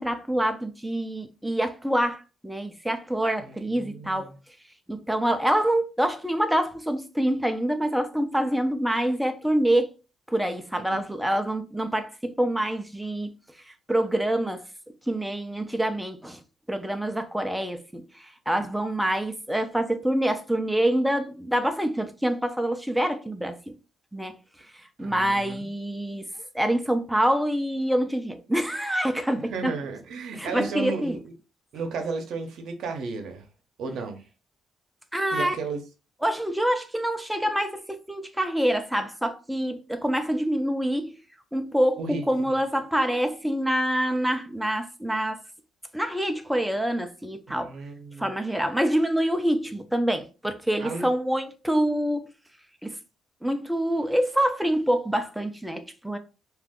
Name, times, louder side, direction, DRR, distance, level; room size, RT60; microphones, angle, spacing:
voice 1, 0.0-4.3 4.9-9.9 10.3-13.3 13.9-14.7 15.1-16.4 16.7-23.8 24.1-24.4 25.0-26.3 26.5-29.7 30.3-31.2 35.1-35.5 36.2-41.2 41.5-45.4 45.9-47.7 48.2-52.3 52.8-53.0 53.4-56.2, right 1 dB, 5° right, 0.5 m, -26 dB
voice 2, 3.4-4.4 10.9-11.0 25.0-25.7 29.5-31.3 31.7-33.5 33.8-34.2 35.3-35.8 42.0-42.6 47.5-48.3 50.8-51.1, right 4 dB, 75° right, 0.7 m, -34 dB
2.6 x 2.4 x 3.6 m
cardioid pair, 95°, 0 cm